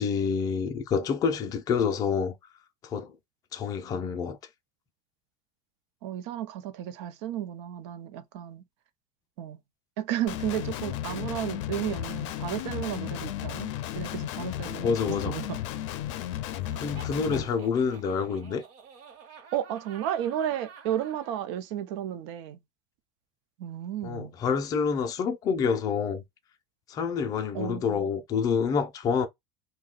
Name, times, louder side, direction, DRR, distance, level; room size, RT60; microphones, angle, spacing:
voice 1, 0.0-2.4 2.8-3.1 3.5-4.4 14.8-15.4 16.8-18.6 24.0-26.2 26.9-29.3, left 6 dB, 25° left, 0.5 m, -27 dB
voice 2, 6.0-8.6 9.4-9.6 10.0-14.9 15.3-15.6 17.3-17.5 19.5-22.6 23.6-24.3 27.5-28.1, right 11 dB, 75° right, 0.6 m, -33 dB
Guitar, 10.3-17.4, left 12 dB, 90° left, 0.5 m, -34 dB
Laughter, 16.6-21.4, right 6 dB, 50° right, 0.9 m, -50 dB
2.7 x 2.2 x 3.7 m
cardioid pair, 175°, 15 cm